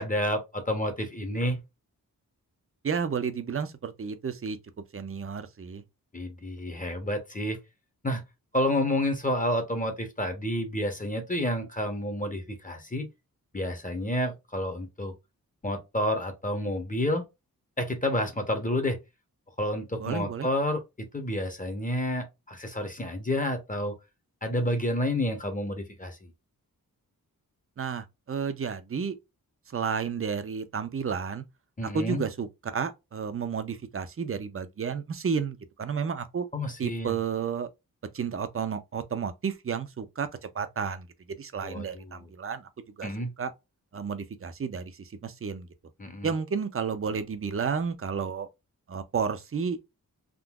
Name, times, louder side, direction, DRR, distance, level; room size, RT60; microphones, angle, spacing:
voice 1, 0.0-1.6 6.1-7.6 8.0-8.2 8.5-13.1 13.5-15.1 15.6-17.2 17.8-19.0 19.6-23.9 24.4-26.3 31.8-32.2 36.5-37.1 41.6-42.3 43.0-43.3 46.0-46.3, left 1 dB, 20° left, 0.9 m, -29 dB
voice 2, 2.8-4.6 4.9-5.8 20.0-20.5 27.8-29.2 29.7-31.4 31.9-36.5 36.8-37.7 38.1-40.3 40.5-42.7 43.0-43.1 43.4-43.5 43.9-45.7 46.2-48.5 48.9-49.8, right 6 dB, 40° right, 0.6 m, -31 dB
3.7 x 2.5 x 2.4 m
wide cardioid pair, 85°, 36 cm